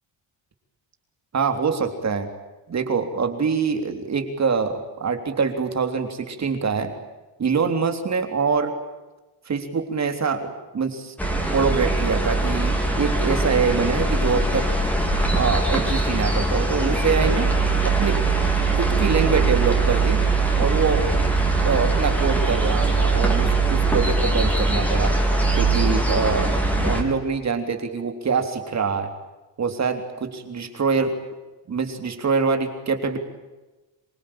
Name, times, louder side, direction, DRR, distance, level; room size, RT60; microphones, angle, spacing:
voice 1, 1.3-2.3 2.7-6.9 7.4-8.7 9.5-11.1 11.5-14.7 15.3-17.5 17.8-18.2 18.6-20.2 20.6-21.1 21.6-25.1 25.6-26.5 26.7-29.1 29.6-31.2 31.7-33.2, right 5 dB, 35° right, 7 dB, 3.6 m, -24 dB
sound 1, 11.2-27.0, right 3 dB, 5° left, 4.2 m, -21 dB
26.5 x 24.0 x 8.9 m, 1.1 s
cardioid pair, 175°, 47 cm